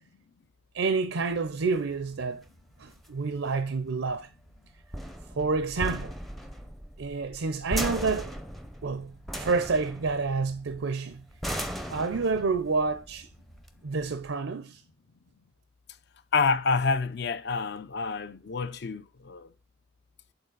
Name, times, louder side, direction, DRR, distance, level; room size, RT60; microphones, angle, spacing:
voice 1, 0.7-2.4 2.8-4.3 5.4-6.1 7.0-8.4 8.8-11.2 11.9-13.3 13.8-14.8, right 4 dB, 80° right, 0.5 m, -29 dB
sound 1, 1.3-14.3, equal, ahead, 0.5 m, -38 dB
voice 2, 16.3-19.5, left 4 dB, 55° left, 0.5 m, -28 dB
7.8 x 4.0 x 3.9 m
head